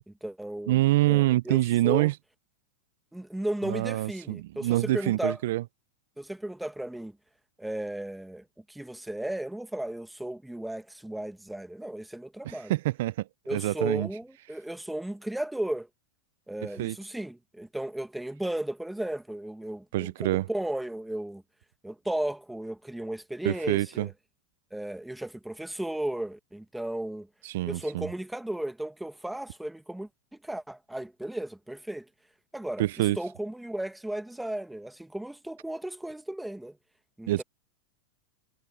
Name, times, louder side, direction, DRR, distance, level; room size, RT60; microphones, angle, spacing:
voice 1, 0.1-0.8 1.0-2.1 3.1-5.4 6.2-7.2 7.6-12.7 13.5-15.9 16.5-21.4 21.8-24.1 24.7-27.3 27.7-32.1 32.5-36.8 37.2-37.4, right 1 dB, 5° right, 1.3 m, -35 dB
voice 2, 0.7-2.1 3.6-5.6 12.4-14.1 16.8-17.0 19.9-20.5 23.4-24.1 27.4-28.1 32.8-33.2 37.3-37.4, right 16 dB, 70° right, 0.3 m, -26 dB
supercardioid pair, 135°, 0 cm